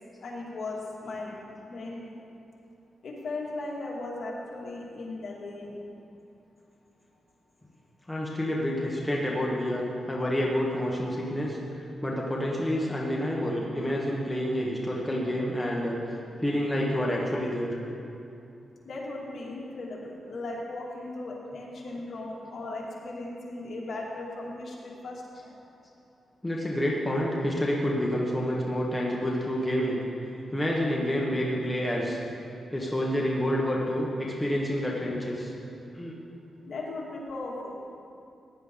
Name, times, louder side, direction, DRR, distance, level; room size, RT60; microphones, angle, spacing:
voice 1, 0.2-1.4 1.7-2.1 3.0-5.8 18.8-25.6 36.6-38.0, left 2 dB, 55° left, -4 dB, 2.5 m, -37 dB
voice 2, 8.1-11.6 12.0-17.7 21.5-21.6 26.4-30.0 30.5-32.2 32.7-35.5 35.9-36.2, equal, 5° left, -4 dB, 1.2 m, -28 dB
16.0 x 10.0 x 3.9 m, 2.6 s
wide cardioid pair, 135°, 0 cm